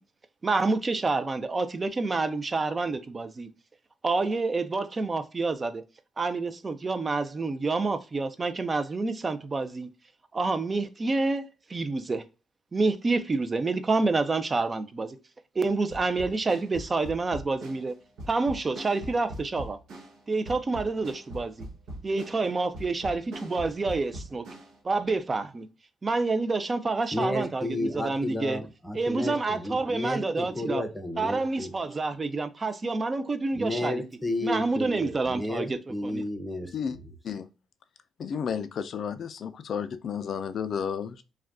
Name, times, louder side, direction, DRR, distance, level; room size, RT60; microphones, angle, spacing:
voice 1, 0.4-3.5 4.0-5.8 6.2-9.9 10.3-12.2 12.7-15.2 15.6-17.9 18.3-19.8 20.3-21.7 22.0-24.4 24.8-25.7 26.0-28.6 28.9-30.8 31.2-34.0 34.4-36.2, right 3 dB, 30° right, 0.4 m, -28 dB
sound 1, 15.9-24.8, right 1 dB, 75° right, 0.8 m, -41 dB
voice 2, 27.1-31.7 33.5-37.0, left 1 dB, 5° left, 0.7 m, -32 dB
voice 3, 38.2-41.2, left 7 dB, 60° left, 0.3 m, -32 dB
2.4 x 2.2 x 3.5 m
cardioid pair, 90°, 0 cm